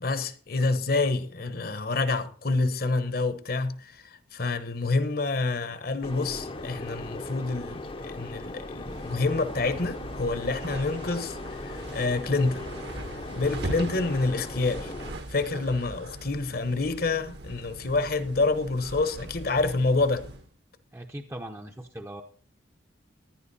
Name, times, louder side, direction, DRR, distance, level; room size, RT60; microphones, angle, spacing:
voice 1, 0.0-4.0 4.3-11.4 11.6-12.7 13.3-14.9 15.3-20.2, left 3 dB, 50° left, 1.1 m, -27 dB
sound 1, 6.0-15.1, left 2 dB, 30° left, 0.7 m, -38 dB
sound 2, 8.7-20.5, right 1 dB, 60° right, 1.4 m, -40 dB
voice 2, 20.9-22.2, right 1 dB, 15° right, 0.7 m, -39 dB
15.0 x 10.5 x 4.2 m
head